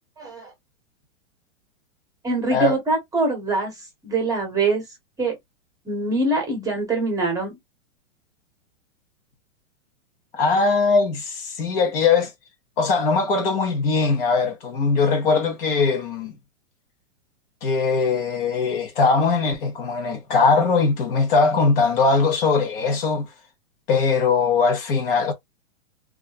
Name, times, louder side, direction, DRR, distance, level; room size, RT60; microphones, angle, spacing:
voice 1, 0.2-0.5 2.2-3.7 4.0-4.8 5.2-5.4 5.8-7.6, right 2 dB, 10° right, 1.0 m, -23 dB
voice 2, 10.3-12.3 12.8-16.3 17.6-23.3 23.9-25.3, left 4 dB, 45° left, 0.9 m, -20 dB
2.4 x 2.3 x 2.3 m
hypercardioid pair, 150°, 39 cm